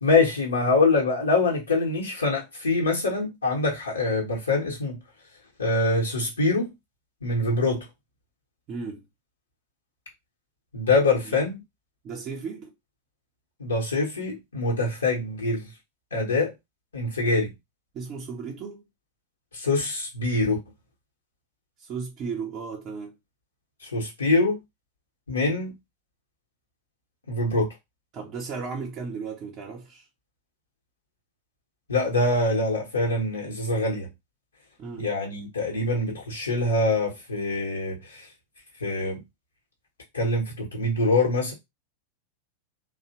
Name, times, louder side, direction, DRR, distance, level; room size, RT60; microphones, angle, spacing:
voice 1, 0.0-5.0 5.6-6.7 7.2-7.8 10.7-11.5 13.6-15.7 16.1-16.5 16.9-17.5 19.5-20.6 23.8-24.6 25.3-25.7 27.3-27.7 31.9-34.1 35.0-38.2 38.8-39.2 40.1-41.5, left 2 dB, 75° left, 0.8 m, -24 dB
voice 2, 8.7-9.0 11.2-11.4 12.0-12.7 17.9-18.8 21.8-23.2 28.1-30.1 34.8-35.1, right 5 dB, 35° right, 0.5 m, -35 dB
2.7 x 2.0 x 2.7 m
figure-of-eight pair, 90°, 0 cm